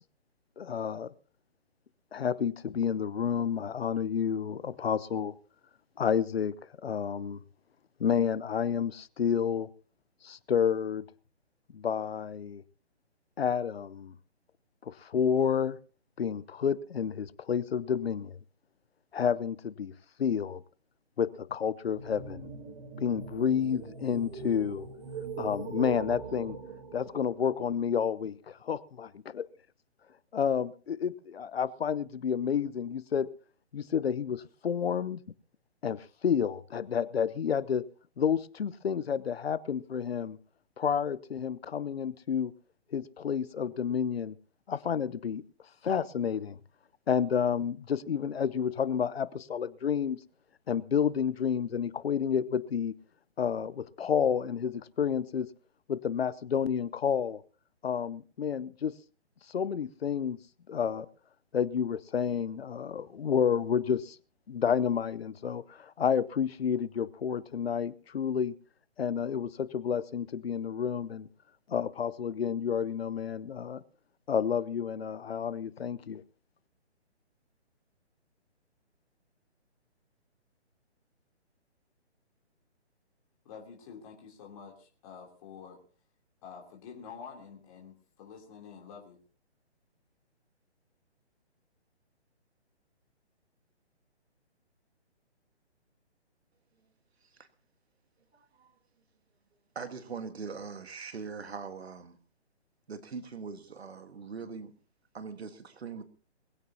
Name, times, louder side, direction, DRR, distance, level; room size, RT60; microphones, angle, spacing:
voice 1, 0.6-1.1 2.1-5.3 6.0-6.5 6.8-7.4 8.0-9.7 10.2-11.0 11.7-12.6 13.4-14.1 14.9-15.8 16.2-18.4 19.1-19.9 20.2-20.6 21.2-22.5 23.0-24.9 25.4-26.6 26.9-29.5 30.3-33.3 33.7-35.2 35.8-37.8 38.2-40.4 40.8-42.5 42.9-44.3 44.7-45.4 45.8-46.6 47.1-50.2 50.7-52.9 53.4-55.5 55.9-57.4 57.8-58.9 59.5-60.4 60.7-61.1 61.5-64.2 64.5-68.5 69.0-71.3 71.7-73.8 74.3-76.2, left 7 dB, 60° left, 18 dB, 0.9 m, -30 dB
sound 1, 21.8-27.8, right 5 dB, 40° right, 3.6 m, -41 dB
voice 2, 83.4-85.8 86.4-89.2, left 6 dB, 30° left, 0 dB, 3.2 m, -48 dB
voice 3, 98.3-98.7 99.7-102.2 102.9-104.7 105.1-106.0, right 5 dB, 65° right, 10 dB, 1.6 m, -41 dB
21.5 x 16.0 x 2.8 m, 0.38 s
figure-of-eight pair, 145°, 34 cm